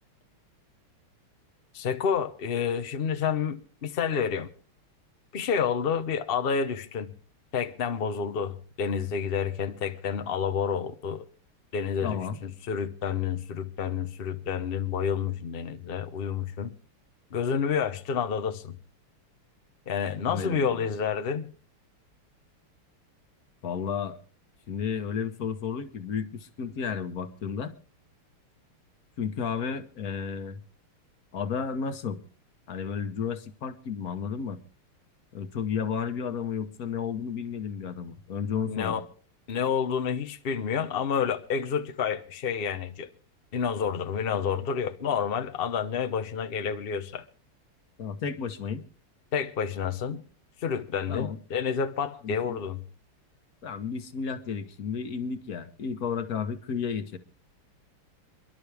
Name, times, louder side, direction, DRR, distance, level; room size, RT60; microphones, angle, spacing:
voice 1, 1.7-4.5 5.3-7.1 7.5-11.3 11.7-16.7 17.3-18.8 19.9-21.5 38.7-39.1 39.5-43.1 43.5-47.2 49.3-50.2 50.6-52.8, left 7 dB, 85° left, 0.5 m, -29 dB
voice 2, 12.0-12.4 20.3-20.9 23.6-24.2 24.7-27.7 29.2-30.6 31.3-32.2 32.7-34.6 35.3-39.0 48.0-48.8 51.1-51.4 52.2-52.6 53.6-57.2, left 6 dB, 50° left, 1.4 m, -32 dB
28.0 x 11.5 x 3.4 m
omnidirectional pair, 2.4 m